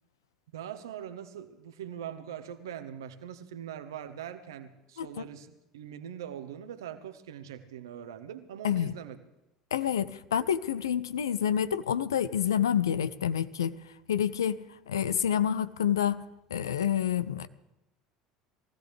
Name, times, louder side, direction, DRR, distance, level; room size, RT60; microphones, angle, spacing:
voice 1, 0.5-9.2, right 9 dB, 70° right, 10 dB, 1.2 m, -42 dB
voice 2, 9.7-13.8 14.1-14.6 14.9-16.2 16.5-17.5, left 9 dB, 75° left, 15 dB, 0.6 m, -28 dB
23.0 x 16.0 x 3.3 m, 0.92 s
figure-of-eight pair, 65°, 2 cm